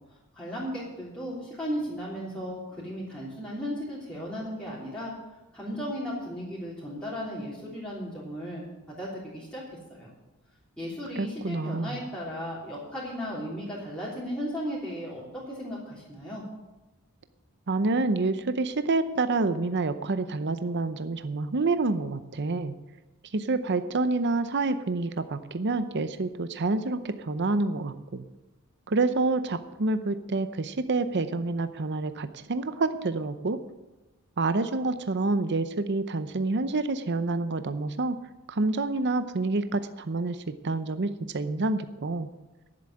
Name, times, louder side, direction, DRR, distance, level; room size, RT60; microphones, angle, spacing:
voice 1, 0.1-5.1 5.5-8.6 9.0-10.1 10.8-16.4, equal, 5° left, -8 dB, 3.2 m, -35 dB
voice 2, 11.2-12.0 17.7-22.7 23.3-28.2 28.9-33.6 34.4-38.2 38.5-40.4 40.6-42.3, right 3 dB, 50° right, 10 dB, 0.7 m, -28 dB
11.0 x 7.8 x 9.8 m, 1.1 s
head